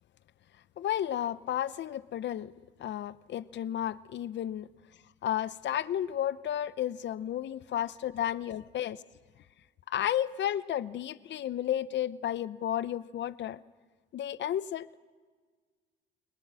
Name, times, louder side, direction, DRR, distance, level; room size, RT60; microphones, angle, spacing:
voice 1, 0.8-2.5 2.8-4.7 5.2-9.0 9.9-13.6 14.1-15.0, left 11 dB, 65° left, 16 dB, 0.8 m, -32 dB
29.0 x 21.0 x 6.2 m, 1.5 s
cardioid pair, 90°, 20 cm